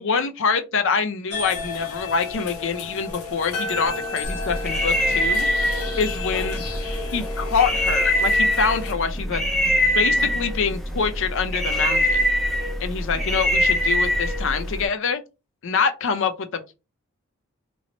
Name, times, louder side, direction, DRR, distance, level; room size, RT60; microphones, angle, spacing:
voice 1, 0.0-5.5 6.0-6.6 7.1-9.4 9.9-12.3 12.8-15.2 15.6-16.7, left 5 dB, 60° left, 0.5 m, -25 dB
sound 1, 1.3-8.9, left 3 dB, 90° left, 1.1 m, -32 dB
sound 2, 4.2-14.9, equal, ahead, 0.3 m, -23 dB
3.0 x 2.0 x 3.8 m
head